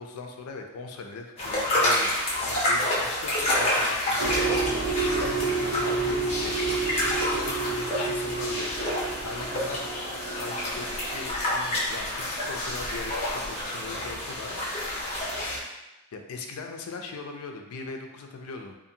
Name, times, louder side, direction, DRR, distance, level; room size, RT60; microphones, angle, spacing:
voice 1, 0.0-8.7 9.2-10.1 10.3-14.6 16.1-18.8, left 4 dB, 75° left, 4 dB, 0.4 m, -40 dB
sound 1, 1.4-15.6, left 1 dB, 30° left, 0.7 m, -28 dB
sound 2, 4.2-11.3, right 4 dB, 80° right, 0.4 m, -30 dB
2.6 x 2.5 x 2.7 m, 0.98 s
head